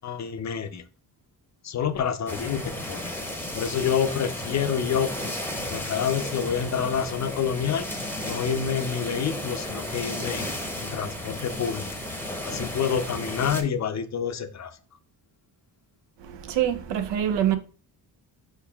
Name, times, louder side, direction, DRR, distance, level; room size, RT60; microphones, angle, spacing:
voice 1, 0.0-0.8 1.6-3.1 3.5-5.3 5.7-7.9 8.2-10.5 10.8-12.0 12.4-14.8, left 7 dB, 40° left, 0.5 m, -28 dB
sound 1, 2.3-13.6, left 1 dB, 5° left, 0.7 m, -34 dB
voice 2, 16.2-17.6, right 10 dB, 85° right, 0.6 m, -25 dB
4.7 x 4.4 x 2.3 m
cardioid pair, 85°, 42 cm